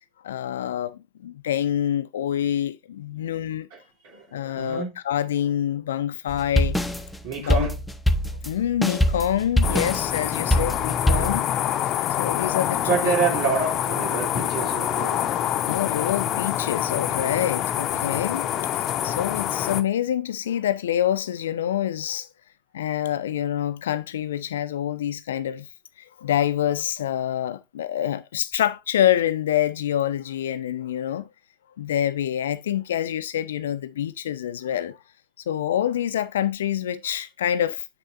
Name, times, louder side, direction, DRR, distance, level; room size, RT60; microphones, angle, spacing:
voice 1, 0.2-3.7 4.3-6.8 7.4-7.7 8.5-11.5 12.2-13.1 15.6-22.3 22.7-25.7 26.2-31.3 31.8-35.0 35.5-37.9, left 11 dB, 70° left, 0.7 m, -26 dB
voice 2, 3.7-5.0 7.2-7.8 12.8-15.3 18.0-18.2, right 5 dB, 60° right, 3.0 m, -28 dB
sound 1, 6.3-11.4, equal, 5° left, 1.1 m, -23 dB
sound 2, 9.6-19.8, left 11 dB, 45° left, 0.9 m, -26 dB
8.9 x 6.8 x 2.6 m
figure-of-eight pair, 75°, 0 cm